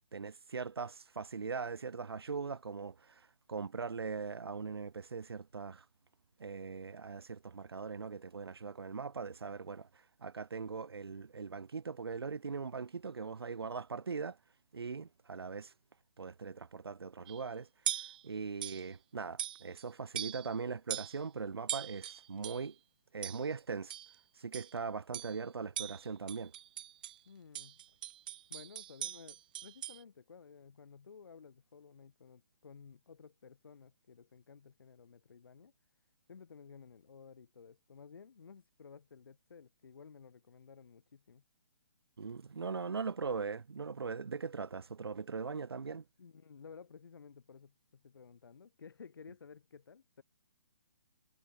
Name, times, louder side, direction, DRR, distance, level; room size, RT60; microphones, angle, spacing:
voice 1, 0.1-5.9 6.4-14.4 14.7-15.7 16.2-17.7 18.2-22.8 23.1-23.9 24.3-26.5 42.2-46.0, right 5 dB, 90° right, 1.8 m, -40 dB
sound 1, 17.3-17.5 17.9-18.2 18.6-18.9 19.4-19.8 20.1-20.6 20.9-21.2 21.7-22.7 23.2-23.5 23.9-24.2 24.5-24.8 25.1-25.4 25.8-27.2 27.5-30.0, right 12 dB, 20° right, 0.3 m, -41 dB
voice 2, 27.3-27.8 28.5-35.7 36.3-41.4 46.2-50.2, left 6 dB, 70° left, 6.9 m, -55 dB
hypercardioid pair, 165°, 12 cm